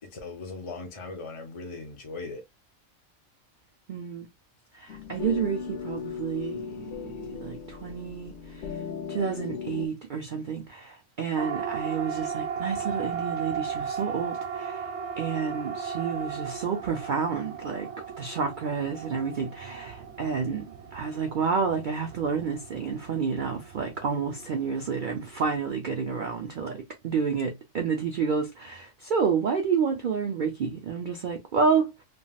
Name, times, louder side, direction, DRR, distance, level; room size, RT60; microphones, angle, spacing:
voice 1, 0.1-2.4, left 3 dB, 35° left, 0.5 m, -38 dB
voice 2, 3.9-4.3 4.8-8.3 9.1-14.9 15.2-17.9 18.2-31.9, right 6 dB, 80° right, 0.4 m, -29 dB
sound 1, 4.9-9.9, left 7 dB, 60° left, 0.9 m, -37 dB
Siren, 11.4-25.7, right 6 dB, 60° right, 0.8 m, -36 dB
3.5 x 2.3 x 2.2 m
omnidirectional pair, 1.4 m